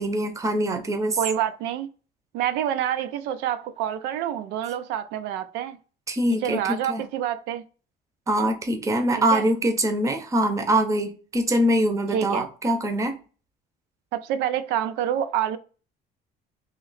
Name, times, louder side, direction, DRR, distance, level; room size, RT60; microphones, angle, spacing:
voice 1, 0.0-1.2 6.1-7.0 8.3-13.2, right 1 dB, 20° right, 0.6 m, -23 dB
voice 2, 1.2-1.9 2.3-5.8 6.4-7.6 9.3-9.5 12.1-12.5 14.1-15.6, right 10 dB, 90° right, 0.4 m, -27 dB
3.1 x 2.8 x 4.0 m
cardioid pair, 145°, 17 cm